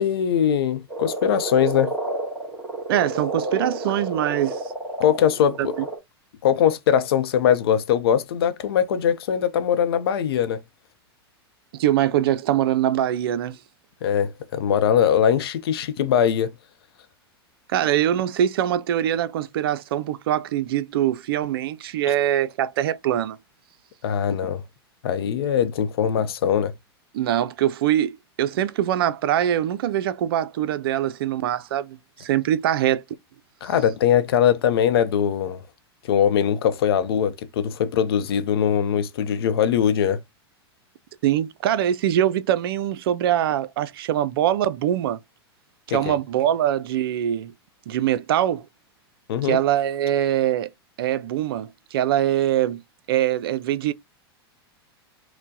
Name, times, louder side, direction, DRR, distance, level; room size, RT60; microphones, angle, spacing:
voice 1, 0.0-1.9 5.0-5.7 6.4-10.6 14.0-16.5 22.1-22.2 24.0-24.6 25.0-26.7 33.6-35.6 36.1-40.2 45.9-46.1 49.3-49.6, left 9 dB, 70° left, 0.6 m, -21 dB
Frog, 0.9-6.0, right 2 dB, 10° right, 1.8 m, -30 dB
voice 2, 2.9-4.6 5.6-5.7 11.7-13.6 17.7-23.4 27.1-33.0 41.2-45.2 45.9-47.5 47.9-48.6 49.4-50.7 51.0-52.8 53.1-53.9, right 11 dB, 65° right, 0.4 m, -23 dB
4.3 x 2.1 x 2.7 m
hypercardioid pair, 100°, 13 cm